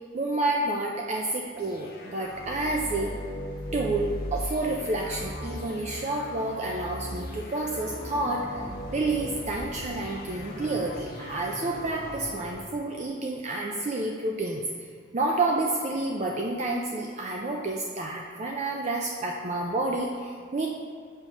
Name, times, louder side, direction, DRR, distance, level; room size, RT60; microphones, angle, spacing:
voice 1, 0.1-3.1 3.7-8.6 8.9-14.6 15.1-20.7, right 2 dB, 35° right, -1 dB, 0.5 m, -29 dB
sound 1, 1.6-12.6, equal, 55° left, 0.9 m, -38 dB
5.8 x 4.5 x 5.3 m, 2.1 s
head